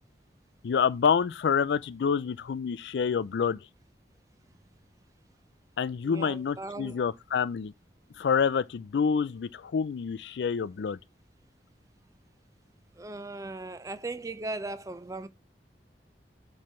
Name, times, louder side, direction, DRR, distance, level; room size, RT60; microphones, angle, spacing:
voice 1, 0.6-3.6 5.8-7.7 8.2-11.0, left 6 dB, 80° left, 0.4 m, -27 dB
voice 2, 6.0-7.0 13.0-15.3, right 2 dB, 20° right, 0.4 m, -38 dB
7.6 x 3.3 x 4.3 m
head